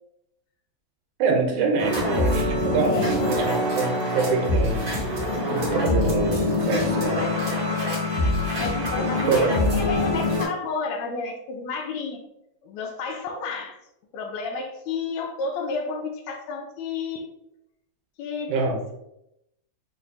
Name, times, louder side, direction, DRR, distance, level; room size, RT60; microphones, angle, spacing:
voice 1, 1.2-4.8 5.5-7.2 9.3-9.5 18.5-18.8, right 4 dB, 90° right, 2 dB, 2.2 m, -25 dB
sound 1, 1.8-10.4, left 1 dB, 60° right, 0.9 m, -24 dB
voice 2, 2.8-4.0 8.6-9.5 9.7-12.2 12.6-13.8 14.1-17.3 18.2-18.5, left 4 dB, 80° left, 3 dB, 1.8 m, -31 dB
5.9 x 2.5 x 2.7 m, 0.83 s
omnidirectional pair, 3.3 m